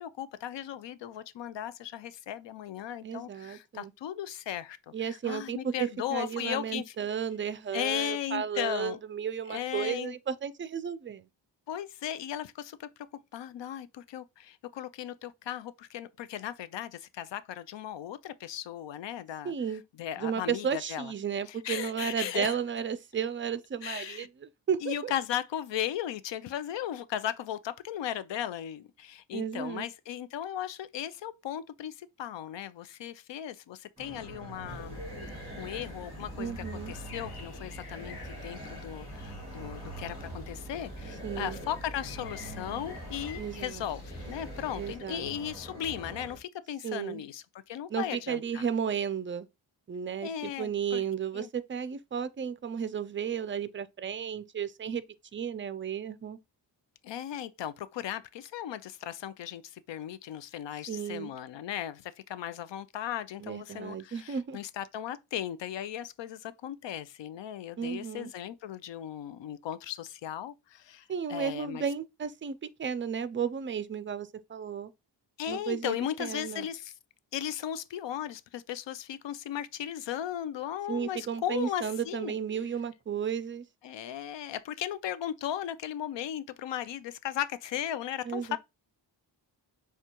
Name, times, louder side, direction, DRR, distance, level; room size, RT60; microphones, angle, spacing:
voice 1, 0.0-6.9 7.7-9.0 9.5-10.1 11.7-12.9 13.3-19.5 20.0-21.1 21.5-22.6 23.8-24.3 24.8-48.7 50.2-51.0 51.3-51.5 57.0-71.8 75.4-76.9 77.3-82.4 83.8-88.6, left 11 dB, 75° left, 0.5 m, -37 dB
voice 2, 3.0-3.9 4.9-11.3 19.4-19.8 20.2-25.1 29.3-29.9 36.4-36.9 41.2-41.6 43.4-43.8 44.8-45.3 46.8-47.2 47.9-49.5 49.9-55.0 55.3-56.4 60.9-61.3 63.4-64.6 67.8-68.3 71.1-74.9 75.5-76.7 80.9-83.6 88.3-88.6, right 7 dB, 30° right, 0.4 m, -33 dB
sound 1, 34.0-46.4, right 2 dB, 15° right, 2.3 m, -45 dB
sound 2, 34.7-45.0, left 1 dB, 55° left, 1.3 m, -45 dB
6.6 x 2.4 x 2.9 m
wide cardioid pair, 100°, 44 cm